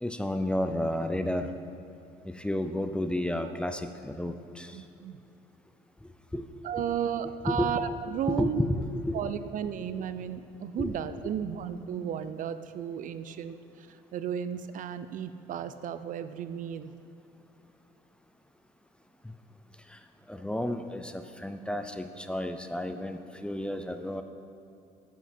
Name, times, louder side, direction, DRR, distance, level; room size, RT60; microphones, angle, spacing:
voice 1, 0.0-1.5 2.4-4.7 6.3-6.4 6.8-7.0 7.4-7.7 8.3-9.1 10.8-10.9 20.3-24.2, left 1 dB, 5° left, 8 dB, 0.4 m, -31 dB
voice 2, 4.7-5.2 6.6-8.6 9.1-13.9 14.1-16.9, right 8 dB, 50° right, 12 dB, 0.4 m, -34 dB
9.1 x 8.0 x 4.4 m, 2.8 s
cardioid pair, 110°, 17 cm